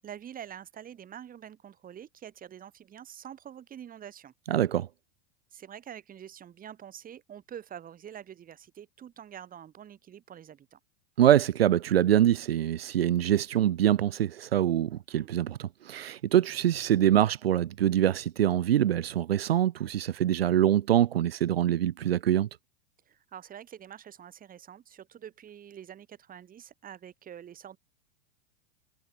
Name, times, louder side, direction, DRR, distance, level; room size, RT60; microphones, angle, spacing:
voice 1, 0.0-4.3 5.5-10.8 15.1-15.3 23.1-27.8, right 9 dB, 30° right, 8.0 m, -46 dB
voice 2, 4.5-4.9 11.2-22.5, right 11 dB, 90° right, 2.3 m, -24 dB
hypercardioid pair, 120°, 29 cm